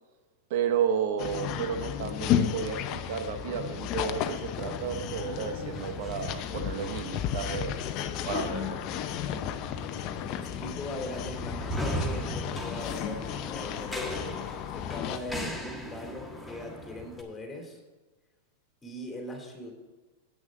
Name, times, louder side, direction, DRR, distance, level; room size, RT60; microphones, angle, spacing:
voice 1, 0.5-7.8 8.3-8.8, right 7 dB, 65° right, 8 dB, 0.8 m, -32 dB
sound 1, 1.2-15.2, left 9 dB, 45° left, 0.7 m, -33 dB
sound 2, 4.4-17.2, equal, ahead, 1.6 m, -39 dB
voice 2, 10.3-14.0 14.7-17.8 18.8-19.7, left 1 dB, 15° left, 1 dB, 2.7 m, -40 dB
8.8 x 6.4 x 6.2 m, 1.3 s
hypercardioid pair, 115°, 0 cm